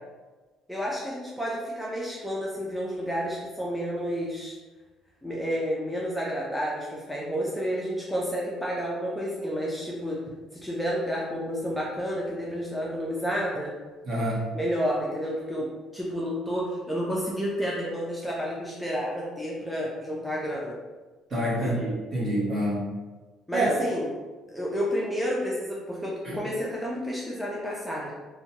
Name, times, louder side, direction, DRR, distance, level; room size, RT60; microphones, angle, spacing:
voice 1, 0.7-4.6 5.2-10.2 10.5-13.7 14.5-20.8 21.6-21.8 23.5-24.1 24.5-28.1, equal, ahead, -5 dB, 0.4 m, -30 dB
voice 2, 14.0-14.4 21.3-22.9 23.5-23.7 26.2-26.4, right 1 dB, 35° right, -5 dB, 1.0 m, -27 dB
2.7 x 2.1 x 2.8 m, 1.3 s
cardioid pair, 130°, 0 cm